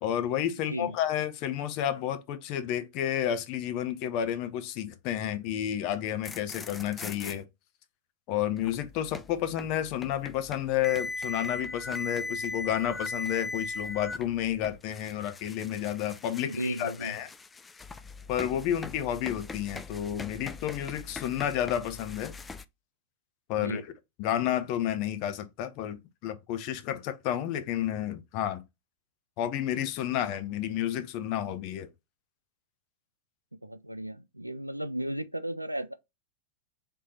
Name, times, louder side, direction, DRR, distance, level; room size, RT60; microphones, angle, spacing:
voice 1, 0.0-7.5 8.3-17.3 18.3-22.3 23.5-23.8 24.2-28.6 29.4-31.9, left 11 dB, 45° left, 0.7 m, -31 dB
sound 1, 6.1-7.4 8.6-22.6, left 3 dB, 15° left, 0.3 m, -40 dB
voice 2, 16.4-17.2 23.5-23.8 33.5-35.9, right 1 dB, 85° right, 0.4 m, -35 dB
3.5 x 3.3 x 4.1 m
figure-of-eight pair, 90°, 0 cm